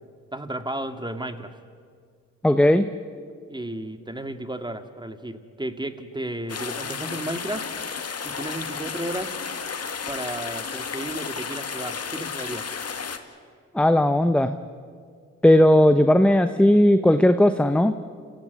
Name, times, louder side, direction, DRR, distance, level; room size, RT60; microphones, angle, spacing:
voice 1, 0.3-1.5 3.5-7.7 8.2-9.3 10.1-12.7, right 1 dB, 15° right, 8 dB, 2.2 m, -33 dB
voice 2, 2.4-2.9 13.7-14.5 15.4-17.9, left 1 dB, 5° left, 9 dB, 1.0 m, -17 dB
sound 1, 6.5-13.2, left 6 dB, 45° left, 2.0 m, -32 dB
28.0 x 16.0 x 9.5 m, 2.1 s
supercardioid pair, 50°, 34 cm